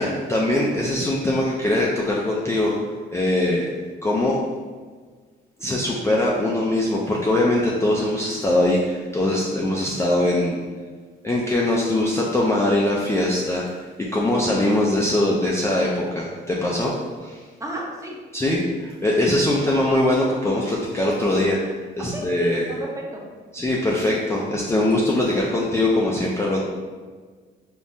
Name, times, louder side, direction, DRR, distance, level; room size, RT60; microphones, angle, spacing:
voice 1, 0.0-2.7 3.1-3.7 4.0-4.4 5.6-10.6 11.2-16.9 17.2-17.4 18.3-22.7 23.5-26.6, left 1 dB, 15° left, -4 dB, 0.3 m, -22 dB
voice 2, 17.6-18.2 19.2-19.3 22.0-23.2, right 1 dB, 15° right, -2 dB, 0.7 m, -32 dB
3.5 x 2.1 x 2.6 m, 1.5 s
cardioid pair, 90°, 20 cm